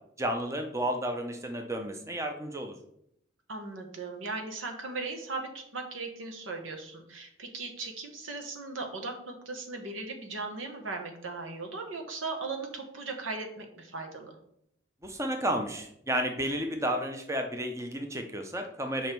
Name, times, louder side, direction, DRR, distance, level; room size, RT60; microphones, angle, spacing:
voice 1, 0.2-2.7 15.0-19.1, right 1 dB, 15° right, 4 dB, 0.7 m, -32 dB
voice 2, 3.5-14.4, right 3 dB, 85° right, 3 dB, 1.5 m, -38 dB
7.1 x 5.3 x 4.6 m, 0.73 s
head